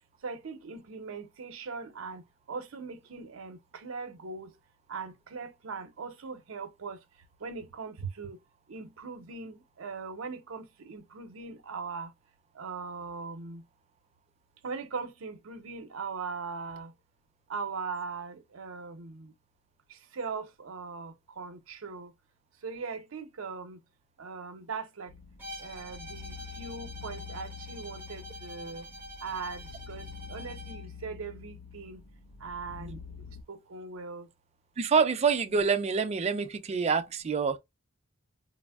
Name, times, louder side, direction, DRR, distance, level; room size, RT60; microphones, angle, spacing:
voice 1, 0.2-2.2 2.5-4.5 4.9-7.0 7.4-8.4 8.7-12.1 12.6-13.6 14.6-16.9 17.5-19.3 19.9-22.1 22.6-23.8 24.2-25.1 25.6-28.8 29.2-32.0 32.4-33.0 33.5-34.3, right 4 dB, 80° right, 0.6 m, -40 dB
sound 1, 25.1-33.4, left 5 dB, 85° left, 0.5 m, -46 dB
Bowed string instrument, 25.4-30.9, equal, 10° right, 0.8 m, -46 dB
voice 2, 34.8-37.6, right 5 dB, 30° right, 0.4 m, -27 dB
4.1 x 2.0 x 2.2 m
head